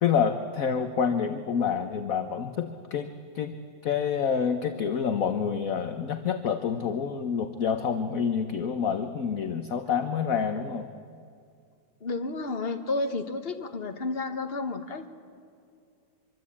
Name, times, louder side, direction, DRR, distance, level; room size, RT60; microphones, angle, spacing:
voice 1, 0.0-3.5 3.8-10.9, left 7 dB, 55° left, 8 dB, 1.3 m, -28 dB
voice 2, 12.0-15.1, left 3 dB, 35° left, 6 dB, 1.6 m, -31 dB
24.5 x 24.5 x 8.6 m, 2.3 s
omnidirectional pair, 2.0 m